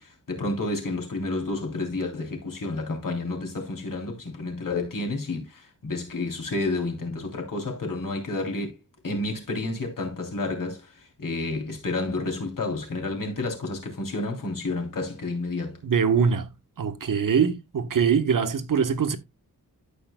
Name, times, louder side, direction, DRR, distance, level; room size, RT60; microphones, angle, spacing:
voice 1, 0.0-8.8 9.0-15.8, left 2 dB, 65° left, 3.1 m, -30 dB
voice 2, 15.8-16.5 16.8-19.2, right 6 dB, 65° right, 1.1 m, -23 dB
15.0 x 5.1 x 2.2 m
wide cardioid pair, 85°, 35 cm